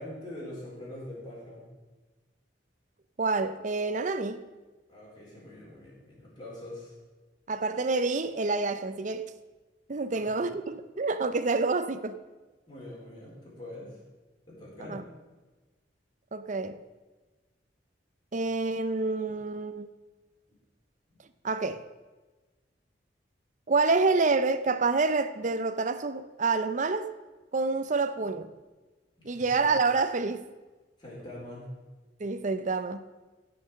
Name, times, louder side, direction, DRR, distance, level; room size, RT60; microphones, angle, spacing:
voice 1, 0.0-1.7 4.9-6.9 10.1-10.3 12.7-14.0 14.5-15.0 29.2-29.5 31.0-31.7, left 1 dB, 25° left, 4.3 m, -43 dB
voice 2, 3.2-4.4 7.5-9.3 9.9-12.2 14.9-15.0 16.3-16.8 18.3-19.9 21.4-21.8 23.7-27.1 27.5-28.5 29.2-30.5 32.2-33.0, right 3 dB, 45° right, 0.6 m, -28 dB
15.0 x 5.9 x 6.4 m
head